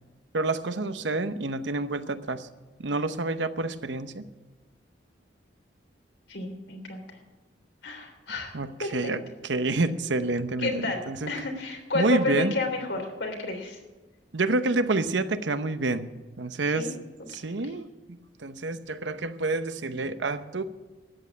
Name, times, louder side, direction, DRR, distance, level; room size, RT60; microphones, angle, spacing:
voice 1, 0.3-2.5 2.8-4.2 8.5-11.3 11.9-12.5 14.3-16.1 16.4-16.9 17.3-20.6, right 3 dB, 85° right, 11 dB, 0.9 m, -28 dB
voice 2, 6.3-7.2 7.8-8.5 8.8-9.1 10.6-13.8 16.7-16.9 17.3-17.4, left 3 dB, 85° left, 3 dB, 3.4 m, -31 dB
13.5 x 9.2 x 8.4 m, 1.2 s
head